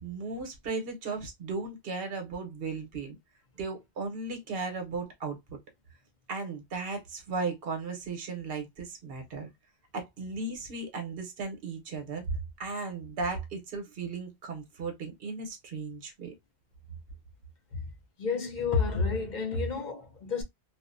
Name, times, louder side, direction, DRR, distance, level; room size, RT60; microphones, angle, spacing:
voice 1, 0.0-3.2 3.6-5.6 6.3-9.5 9.9-12.2 12.6-16.3, right 4 dB, 60° right, 1.0 m, -36 dB
voice 2, 18.2-20.4, left 5 dB, 50° left, 0.6 m, -30 dB
2.5 x 2.1 x 2.4 m
omnidirectional pair, 1.1 m